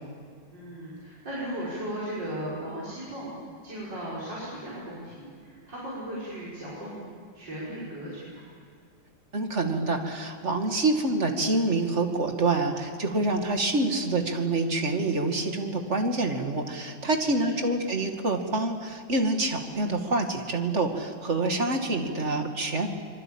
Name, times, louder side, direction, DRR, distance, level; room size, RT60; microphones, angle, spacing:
voice 1, 0.5-3.4 3.6-7.0 7.3-8.4 17.4-17.5, right 1 dB, 70° right, -7 dB, 6.7 m, -36 dB
voice 2, 9.3-22.9, right 2 dB, 40° right, 4 dB, 2.6 m, -26 dB
26.0 x 23.0 x 8.9 m, 2.2 s
omnidirectional pair, 2.0 m